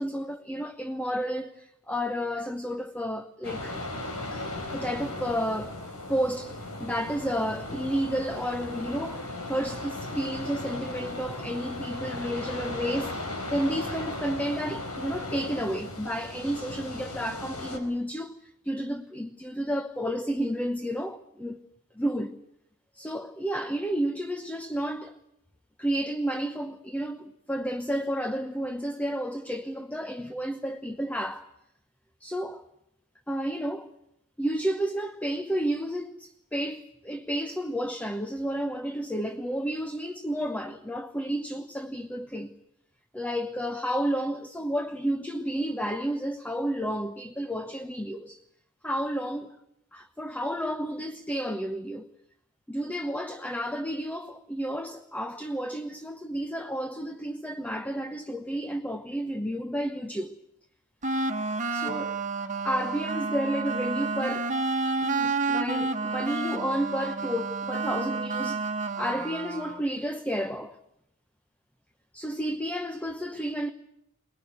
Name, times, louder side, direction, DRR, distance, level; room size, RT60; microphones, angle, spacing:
voice 1, 0.0-3.7 4.3-5.8 6.1-13.2 13.5-21.6 21.9-22.4 22.9-25.2 25.8-31.5 32.2-32.6 33.3-33.9 34.4-42.5 43.1-48.4 48.8-49.5 49.9-52.1 52.7-60.4 61.7-62.2 62.6-64.5 65.0-68.6 69.0-70.8 72.1-73.7, equal, 5° left, 0.9 m, -31 dB
sound 1, 3.4-17.8, left 2 dB, 85° left, 4.5 m, -36 dB
sound 2, 61.0-69.8, right 3 dB, 35° right, 1.6 m, -30 dB
23.0 x 20.5 x 9.4 m
head